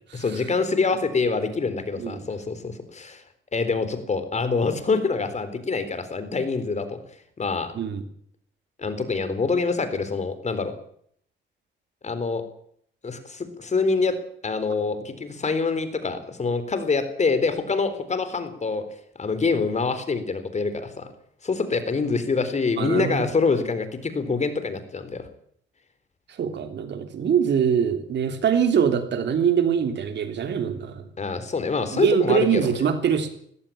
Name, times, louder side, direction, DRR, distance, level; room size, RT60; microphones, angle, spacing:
voice 1, 0.1-3.2 3.5-7.0 7.4-7.7 8.8-10.7 12.0-12.4 13.0-14.2 14.4-18.8 19.2-21.1 21.4-25.2 31.2-32.8, left 4 dB, 35° left, 11 dB, 4.0 m, -25 dB
voice 2, 22.8-23.3 26.4-31.1 31.9-33.3, right 7 dB, 60° right, 8 dB, 3.2 m, -23 dB
19.0 x 17.0 x 8.9 m, 0.65 s
cardioid pair, 90°, 20 cm